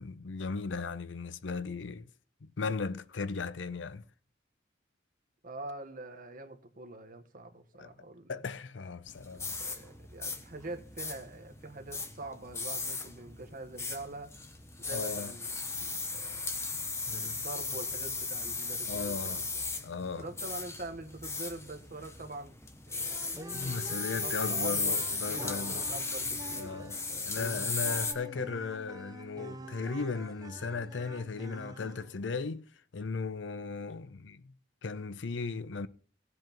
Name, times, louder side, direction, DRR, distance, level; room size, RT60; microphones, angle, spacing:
voice 1, 0.0-2.1 2.6-4.0 7.8-7.9 8.3-9.6 14.9-15.3 17.1-17.4 18.9-19.4 19.8-20.3 23.5-25.9 26.6-27.0 27.2-32.6 32.9-34.4 34.8-35.9, left 4 dB, 80° left, 0.6 m, -36 dB
voice 2, 5.4-8.4 9.3-14.3 14.8-15.5 15.8-16.6 17.1-19.6 20.2-22.5 22.9-23.5 23.9-27.3 27.9-28.0, right 2 dB, 50° right, 1.3 m, -45 dB
sound 1, 9.1-28.1, left 3 dB, 15° left, 1.0 m, -36 dB
sound 2, 23.1-32.3, right 2 dB, 20° right, 0.7 m, -47 dB
18.5 x 7.7 x 3.0 m
head